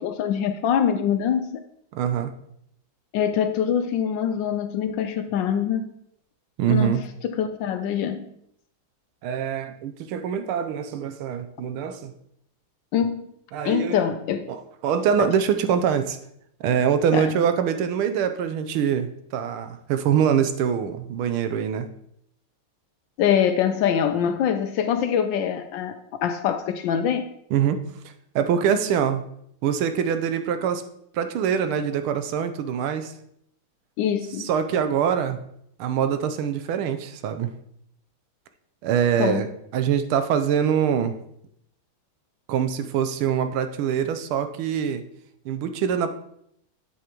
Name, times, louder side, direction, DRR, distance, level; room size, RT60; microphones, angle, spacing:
voice 1, 0.0-1.6 3.1-5.9 6.7-8.3 12.9-13.3 13.6-14.5 15.2-15.3 17.1-17.3 23.2-27.3 34.0-34.5 39.2-39.4, left 8 dB, 75° left, 8 dB, 1.1 m, -24 dB
voice 2, 1.9-2.3 6.6-7.0 9.2-12.1 13.5-14.1 14.5-16.2 16.6-21.9 27.5-27.8 28.3-29.2 29.6-30.8 31.1-33.1 34.4-35.4 35.8-37.5 38.8-39.5 39.7-41.2 42.5-45.0 45.4-46.1, right 8 dB, 85° right, 9 dB, 1.6 m, -24 dB
8.4 x 7.9 x 3.0 m, 0.72 s
omnidirectional pair, 2.3 m